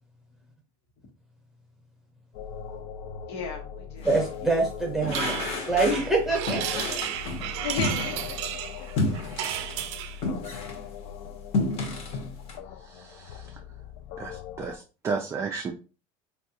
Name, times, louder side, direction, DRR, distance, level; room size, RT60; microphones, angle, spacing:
sound 1, 2.3-14.8, left 7 dB, 65° left, 0.4 m, -40 dB
voice 1, 3.3-4.1 4.4-4.6 7.6-8.9 9.9-10.0, left 6 dB, 85° left, 2 dB, 1.1 m, -36 dB
sound 2, 4.0-4.3 5.0-6.1 6.5-8.5 9.0-10.9 11.2-12.6, left 2 dB, 45° left, 0.9 m, -31 dB
voice 2, 4.0-6.8, right 3 dB, 5° right, 0 dB, 0.9 m, -25 dB
sound 3, 5.1-10.2, right 11 dB, 85° right, 0.4 m, -33 dB
voice 3, 12.8-13.6 14.2-15.7, right 5 dB, 20° right, 2 dB, 0.3 m, -34 dB
3.4 x 2.3 x 2.8 m, 0.35 s
cardioid pair, 145°, 14 cm